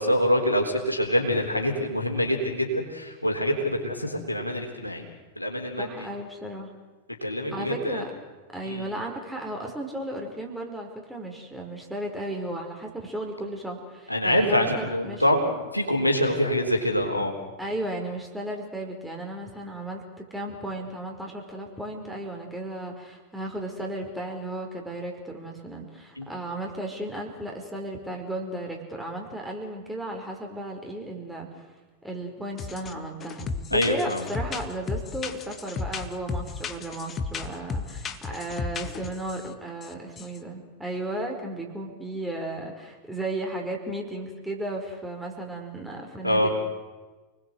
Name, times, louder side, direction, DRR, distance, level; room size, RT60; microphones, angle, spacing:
voice 1, 0.0-5.0 5.4-5.9 7.2-8.0 8.6-8.9 14.1-17.3 26.2-26.3 33.7-34.2 46.2-46.5, equal, 85° left, 2 dB, 3.9 m, -25 dB
voice 2, 5.8-6.7 7.5-8.1 8.5-15.2 17.6-31.7 32.0-46.5, right 1 dB, 5° right, 1 dB, 5.2 m, -35 dB
sound 1, 32.6-32.9 33.2-39.5 39.8-39.9 40.2-40.4, left 4 dB, 25° left, 1.8 m, -34 dB
29.5 x 20.5 x 8.2 m, 1.2 s
figure-of-eight pair, 90°, 0 cm